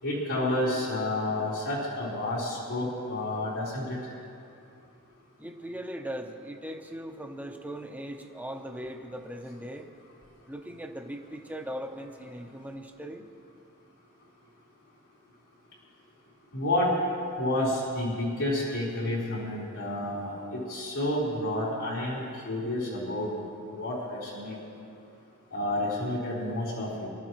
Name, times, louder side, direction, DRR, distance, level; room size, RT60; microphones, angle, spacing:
voice 1, 0.0-4.0 16.5-16.9 17.4-23.4 23.7-24.6 25.5-27.1, left 1 dB, 85° left, -9 dB, 4.3 m, -30 dB
voice 2, 5.4-9.9 10.5-13.2, equal, 5° right, 3 dB, 0.9 m, -39 dB
26.5 x 13.0 x 3.2 m, 2.6 s
head